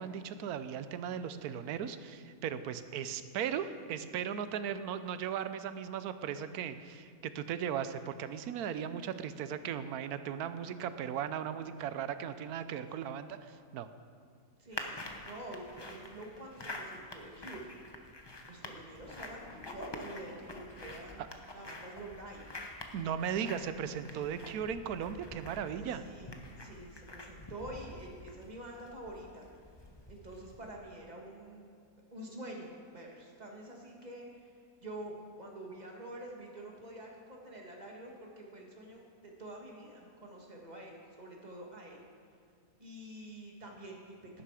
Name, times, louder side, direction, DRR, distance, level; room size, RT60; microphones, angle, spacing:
voice 1, 0.0-13.9 22.9-26.0, right 8 dB, 90° right, 12 dB, 1.1 m, -37 dB
voice 2, 14.6-17.7 18.5-21.2 21.5-22.4 24.1-24.3 25.8-29.5 30.1-31.7 32.1-42.0 42.8-44.4, right 1 dB, 30° right, -1 dB, 1.8 m, -47 dB
sound 1, 14.7-30.8, left 2 dB, 20° left, 0.7 m, -47 dB
sound 2, 18.8-23.4 23.7-24.0, left 4 dB, 50° left, 1.2 m, -58 dB
11.5 x 11.0 x 4.8 m, 2.3 s
omnidirectional pair, 1.5 m